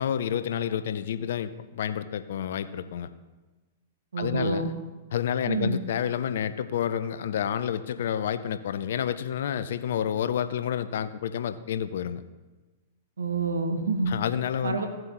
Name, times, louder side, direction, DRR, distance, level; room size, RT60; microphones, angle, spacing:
voice 1, 0.0-3.1 4.2-4.7 5.1-12.2 14.1-14.8, left 9 dB, 65° left, 12 dB, 0.6 m, -29 dB
voice 2, 4.1-4.7 5.4-5.8 13.2-14.1 14.6-14.9, right 3 dB, 85° right, 6 dB, 1.3 m, -27 dB
16.0 x 7.6 x 3.0 m, 1.2 s
hypercardioid pair, 110°, 0 cm